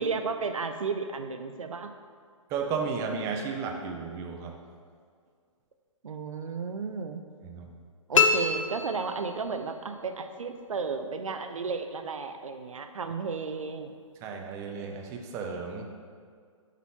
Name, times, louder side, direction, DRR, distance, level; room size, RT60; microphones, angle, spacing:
voice 1, 0.0-1.9 6.0-7.2 8.1-13.9, right 5 dB, 75° right, 7 dB, 0.5 m, -33 dB
voice 2, 2.5-4.6 7.4-7.7 14.2-15.9, right 5 dB, 15° right, 3 dB, 0.4 m, -33 dB
sound 1, 8.1-9.7, left 5 dB, 70° left, 0.6 m, -26 dB
7.3 x 4.0 x 4.2 m, 2.1 s
figure-of-eight pair, 130°, 17 cm